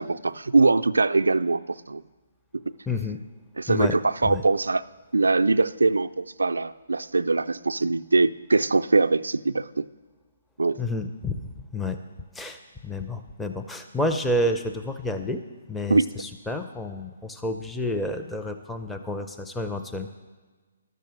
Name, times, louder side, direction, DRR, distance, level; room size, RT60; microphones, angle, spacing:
voice 1, 0.0-1.6 1.9-2.0 3.6-4.8 5.1-9.9 10.6-10.8 15.9-16.1, right 3 dB, 85° right, 10 dB, 0.3 m, -22 dB
voice 2, 2.9-3.2 3.7-3.9 4.2-4.4 10.8-11.4 11.7-12.0 12.3-15.4 15.7-20.1, left 1 dB, 5° left, 5 dB, 0.5 m, -29 dB
11.5 x 6.6 x 7.7 m, 1.4 s
hypercardioid pair, 145°, 0 cm